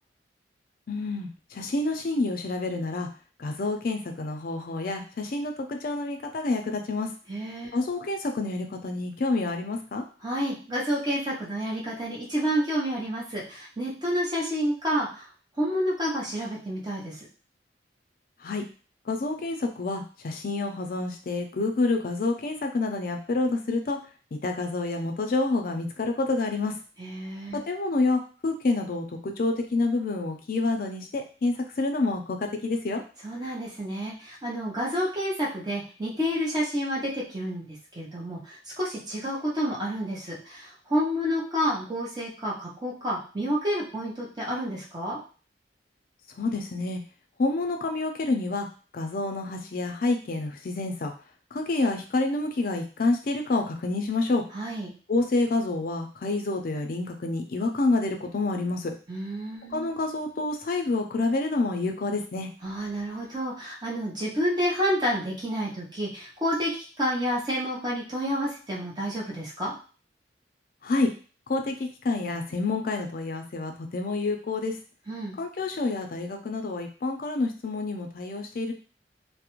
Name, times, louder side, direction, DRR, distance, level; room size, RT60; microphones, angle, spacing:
voice 1, 0.9-3.1 3.4-7.1 7.7-10.0 18.4-18.6 19.1-24.0 24.3-26.7 27.7-32.4 32.6-33.0 46.4-47.0 47.4-48.7 48.9-51.1 51.5-54.4 55.1-58.9 59.7-62.5 70.8-71.1 71.5-74.8 75.4-78.7, left 3 dB, 55° left, 4 dB, 0.4 m, -28 dB
voice 2, 7.3-7.7 10.2-15.3 15.6-17.1 27.0-27.6 33.2-45.2 54.5-54.9 59.1-59.9 62.6-69.7 75.1-75.4, equal, 25° right, -5 dB, 0.7 m, -29 dB
2.4 x 2.0 x 2.9 m, 0.38 s
head